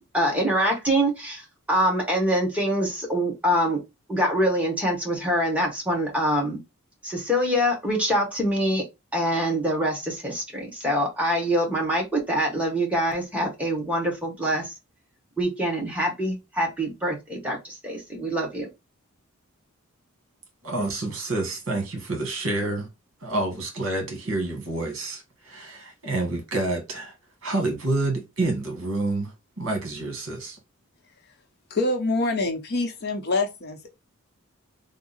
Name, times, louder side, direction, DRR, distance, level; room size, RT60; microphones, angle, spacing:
voice 1, 0.1-3.8 4.1-6.6 7.0-8.8 9.1-14.7 15.4-18.7, equal, 5° right, 1.1 m, -25 dB
voice 2, 20.6-22.9 23.2-27.1 27.4-30.6, right 2 dB, 65° right, 1.3 m, -28 dB
voice 3, 31.7-33.9, left 2 dB, 50° left, 0.7 m, -25 dB
3.6 x 2.0 x 3.9 m
head